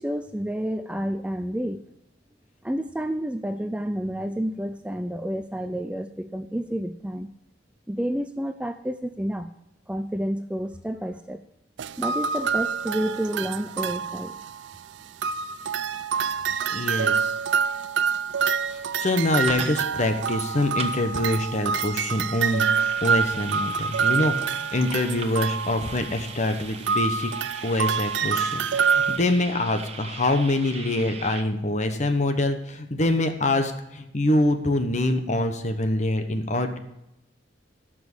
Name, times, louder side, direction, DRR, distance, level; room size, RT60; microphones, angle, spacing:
voice 1, 0.0-1.8 2.6-7.3 7.9-9.5 9.9-11.4 12.0-14.4, equal, 5° right, 9 dB, 0.4 m, -30 dB
sound 1, 11.8-14.8 15.2-29.2, right 6 dB, 70° right, 0.4 m, -26 dB
voice 2, 16.7-17.3 18.7-22.7 23.0-27.3 27.6-36.8, left 1 dB, 40° left, 7 dB, 1.1 m, -25 dB
sound 2, 18.3-31.4, right 5 dB, 35° right, 1.0 m, -40 dB
12.5 x 6.2 x 6.2 m, 0.85 s
head